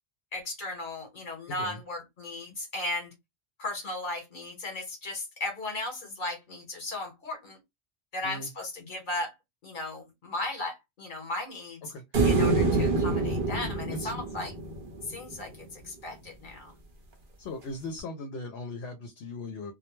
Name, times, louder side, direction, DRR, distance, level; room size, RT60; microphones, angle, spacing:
voice 1, 0.3-3.1 3.6-7.6 8.1-9.3 9.6-11.9 12.2-14.5 15.0-16.7, left 2 dB, 50° left, 1.2 m, -36 dB
sound 1, 12.1-15.4 18.0-18.1, right 3 dB, 55° right, 0.9 m, -26 dB
voice 2, 17.4-19.7, left 2 dB, 75° left, 0.8 m, -38 dB
2.1 x 2.1 x 2.9 m
omnidirectional pair, 1.1 m